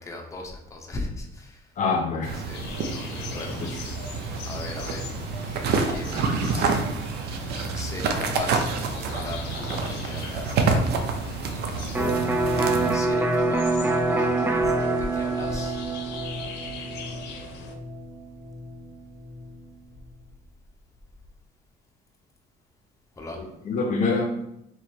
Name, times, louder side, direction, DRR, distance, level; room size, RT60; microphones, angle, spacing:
voice 1, 0.0-1.7 2.4-2.6 2.9-3.6 4.5-5.1 5.9-6.9 7.2-7.4 7.7-10.9 11.9-12.2 12.9-15.9 23.2-23.4, left 2 dB, 20° left, 0 dB, 0.7 m, -38 dB
voice 2, 1.8-2.4 3.3-3.8 23.4-24.3, left 4 dB, 50° left, 2 dB, 0.6 m, -26 dB
sound 1, 2.2-13.0, right 4 dB, 70° right, 0.6 m, -28 dB
sound 2, 2.5-17.8, left 5 dB, 85° left, 0.6 m, -41 dB
Electric guitar, 11.9-19.6, right 2 dB, 10° right, 0.3 m, -26 dB
3.0 x 2.8 x 4.4 m, 0.83 s
cardioid pair, 110°, 17 cm